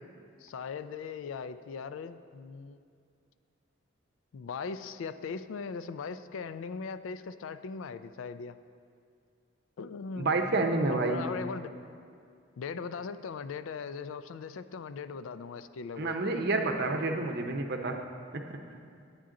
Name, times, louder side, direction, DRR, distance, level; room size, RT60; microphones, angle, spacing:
voice 1, 0.4-2.8 4.3-8.6 9.8-10.3 10.9-11.7 12.6-16.2, left 5 dB, 80° left, 13 dB, 0.4 m, -39 dB
voice 2, 10.1-11.2 16.0-18.0 18.5-18.6, right 2 dB, 55° right, 4 dB, 0.7 m, -29 dB
9.5 x 8.9 x 3.7 m, 2.3 s
head